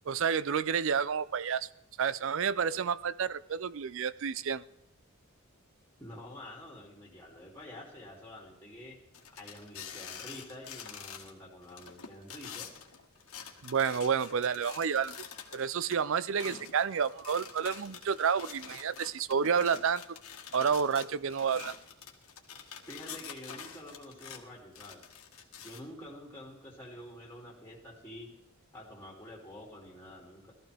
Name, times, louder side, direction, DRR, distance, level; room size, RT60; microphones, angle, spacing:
voice 1, 0.1-1.7 2.0-4.6 13.6-15.2 15.5-20.0 20.5-21.7, right 6 dB, 60° right, 17 dB, 0.5 m, -30 dB
voice 2, 6.0-9.0 9.4-12.7 22.9-25.0 25.6-28.3 28.7-30.5, left 1 dB, 10° left, -2 dB, 2.8 m, -48 dB
sound 1, 9.1-11.3 11.6-15.9 16.4-24.4 24.7-25.8, left 7 dB, 75° left, 1.7 m, -47 dB
18.0 x 13.5 x 3.4 m, 0.81 s
head